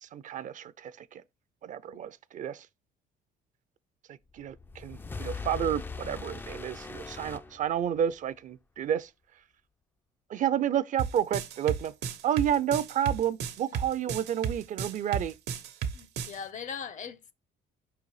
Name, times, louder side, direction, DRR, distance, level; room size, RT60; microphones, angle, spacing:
voice 1, 0.0-1.2 1.6-2.7 4.1-9.1 10.3-11.9 12.2-15.3, right 10 dB, 50° right, 0.5 m, -30 dB
sound 1, 4.4-8.2, left 4 dB, 10° left, 0.3 m, -40 dB
sound 2, 11.0-16.4, right 7 dB, 80° right, 0.9 m, -33 dB
voice 2, 15.9-17.3, left 7 dB, 50° left, 0.7 m, -40 dB
5.2 x 4.0 x 4.7 m
cardioid pair, 110°, 17 cm